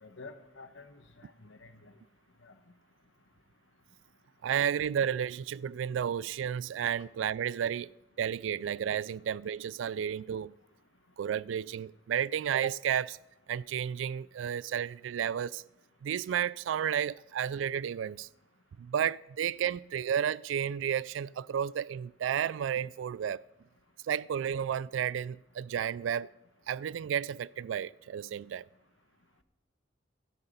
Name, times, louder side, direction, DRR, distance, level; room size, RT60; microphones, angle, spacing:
voice 1, 0.0-1.9 2.4-2.6, left 3 dB, 80° left, 1.1 m, -50 dB
voice 2, 4.4-7.9 8.2-10.5 11.2-13.2 13.5-15.6 16.0-18.3 18.8-23.4 24.1-26.3 26.7-28.6, right 9 dB, 80° right, 0.3 m, -32 dB
12.5 x 10.0 x 5.3 m
head